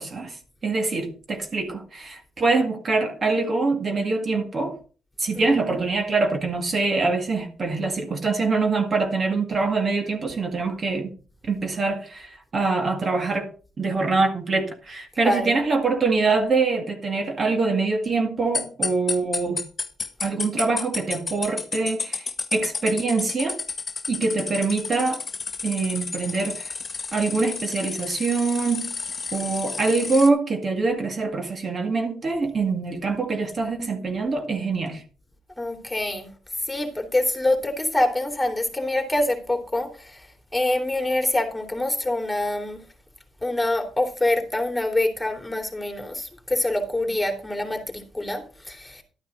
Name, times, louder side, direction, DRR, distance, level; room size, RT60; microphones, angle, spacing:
voice 1, 0.0-4.8 5.2-11.1 11.5-13.5 13.8-19.6 20.2-23.6 24.1-25.2 25.6-26.7 27.1-28.9 29.3-35.0, right 3 dB, 40° right, 1.9 m, -24 dB
sound 1, 18.5-30.3, left 5 dB, 35° left, 1.7 m, -31 dB
voice 2, 35.6-36.3 36.7-40.2 40.5-42.8 43.4-49.0, left 1 dB, 10° left, 3.0 m, -25 dB
12.0 x 9.2 x 4.0 m
cardioid pair, 90°, 0 cm